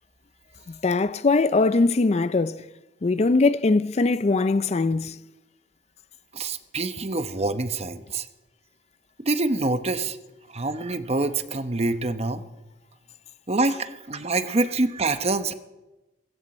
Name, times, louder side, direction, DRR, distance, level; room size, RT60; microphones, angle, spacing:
voice 1, 0.7-2.6 3.0-5.1, left 3 dB, 35° left, 0.4 m, -21 dB
voice 2, 6.3-8.3 9.2-10.2 10.5-12.4 13.5-15.5, right 2 dB, 35° right, 0.9 m, -26 dB
20.0 x 16.5 x 4.3 m
head